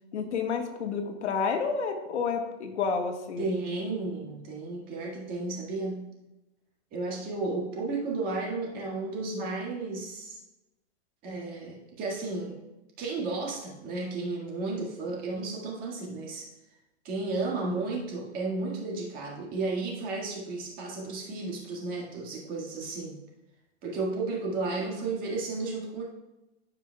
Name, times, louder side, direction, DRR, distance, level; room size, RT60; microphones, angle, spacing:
voice 1, 0.1-3.5, left 5 dB, 80° left, 4 dB, 1.4 m, -30 dB
voice 2, 3.4-6.0 6.9-10.4 11.2-12.6 13.0-16.5 17.0-23.2 23.8-26.0, right 3 dB, 25° right, -3 dB, 1.9 m, -33 dB
15.0 x 5.3 x 2.3 m, 0.99 s
hypercardioid pair, 160°, 34 cm